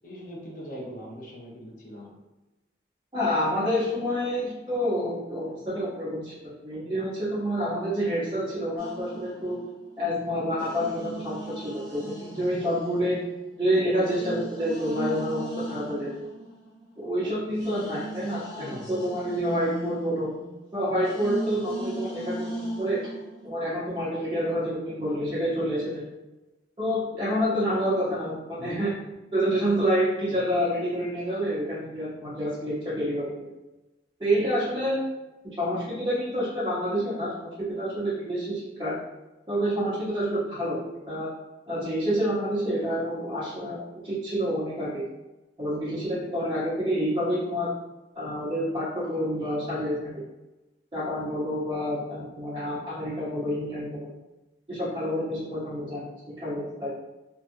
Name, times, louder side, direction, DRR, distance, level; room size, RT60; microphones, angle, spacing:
voice 1, 0.0-2.1 12.3-12.5 18.6-19.0 28.6-28.7, equal, 45° left, -3 dB, 0.6 m, -41 dB
voice 2, 3.1-9.6 10.0-13.2 13.6-16.1 17.0-20.3 20.7-23.0 23.4-26.0 26.8-29.0 29.3-33.5 34.2-35.0 35.4-37.3 37.7-39.0 39.5-40.8 41.1-41.3 41.7-45.0 45.6-47.7 48.1-50.2 50.9-54.1 54.7-56.9, equal, 25° right, -11 dB, 0.7 m, -28 dB
sound 1, 8.8-10.0 10.6-17.0 17.5-23.5, right 1 dB, 90° left, 1.0 m, -38 dB
2.6 x 2.3 x 2.6 m, 1.1 s
head